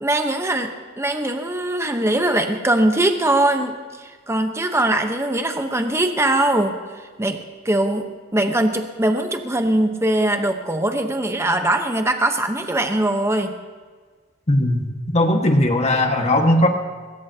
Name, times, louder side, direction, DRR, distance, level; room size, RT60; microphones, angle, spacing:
voice 1, 0.0-6.8 7.2-13.5, right 1 dB, 15° right, 5 dB, 0.9 m, -21 dB
voice 2, 14.5-14.9 15.1-16.7, left 1 dB, 35° left, 3 dB, 1.6 m, -18 dB
21.0 x 18.5 x 2.8 m, 1.5 s
head